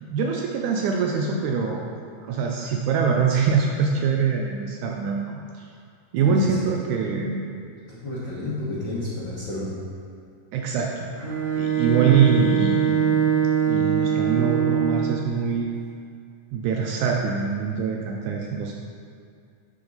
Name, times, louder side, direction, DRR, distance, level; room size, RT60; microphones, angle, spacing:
voice 1, 0.0-1.8 2.2-5.7 6.1-7.4 10.5-11.1 11.6-13.2 13.7-15.7 16.5-18.7, right 5 dB, 80° right, 0 dB, 1.8 m, -24 dB
voice 2, 6.2-6.6 7.9-9.7, left 2 dB, 70° left, -8 dB, 1.1 m, -31 dB
Bowed string instrument, 11.2-15.3, right 8 dB, 45° right, 2.0 m, -22 dB
11.0 x 3.8 x 3.9 m, 2.3 s
omnidirectional pair, 3.8 m